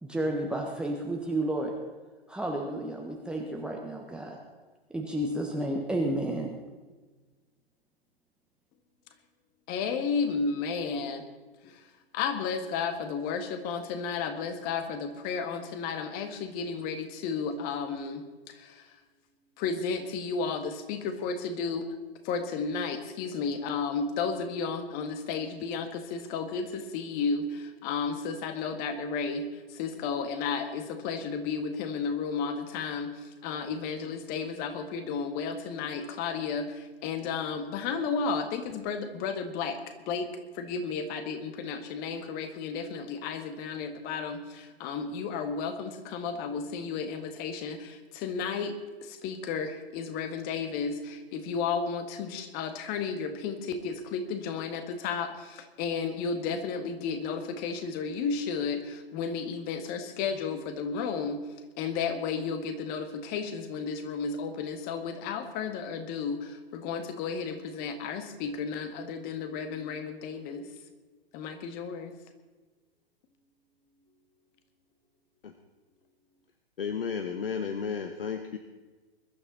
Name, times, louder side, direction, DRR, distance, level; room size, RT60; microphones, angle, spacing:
voice 1, 0.0-1.7 2.3-4.4 4.9-6.5, right 1 dB, 5° right, 0 dB, 1.3 m, -31 dB
voice 2, 9.7-11.2 11.6-19.0 19.6-21.9 22.2-61.4 61.8-70.7 71.3-72.1, left 5 dB, 30° left, 7 dB, 1.8 m, -33 dB
voice 3, 76.8-78.6, left 6 dB, 65° left, 7 dB, 1.2 m, -33 dB
22.0 x 12.0 x 4.2 m, 1.3 s
figure-of-eight pair, 110°, 30 cm